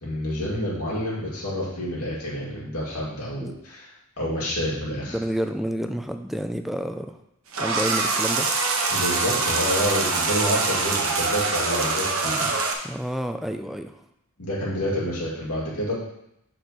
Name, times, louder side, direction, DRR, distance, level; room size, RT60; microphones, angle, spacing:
voice 1, 0.0-3.9 4.2-5.2 8.9-12.5 14.4-15.9, equal, 80° left, -5 dB, 2.1 m, -28 dB
voice 2, 5.1-7.2 7.6-8.5 12.8-13.9, equal, ahead, 7 dB, 0.3 m, -29 dB
sound 1, 7.5-12.7, right 3 dB, 65° right, 1.0 m, -24 dB
6.6 x 4.3 x 4.0 m, 0.79 s
head